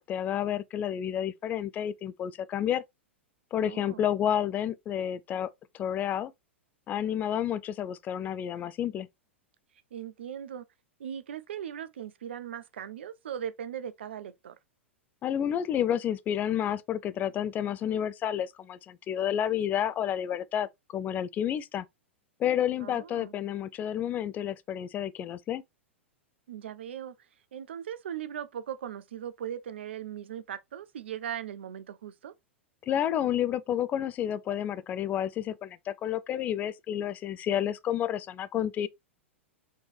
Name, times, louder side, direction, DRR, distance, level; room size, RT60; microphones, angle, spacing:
voice 1, 0.0-2.8 3.5-5.5 5.7-6.3 6.9-9.1 15.2-20.7 20.9-21.9 22.4-25.6 32.9-38.9, left 10 dB, 25° left, 0.3 m, -30 dB
voice 2, 3.6-4.0 9.9-10.6 11.0-14.6 22.8-23.3 26.5-27.1 27.5-32.3, right 9 dB, 65° right, 0.5 m, -39 dB
4.4 x 3.1 x 3.2 m
figure-of-eight pair, 95°, 7 cm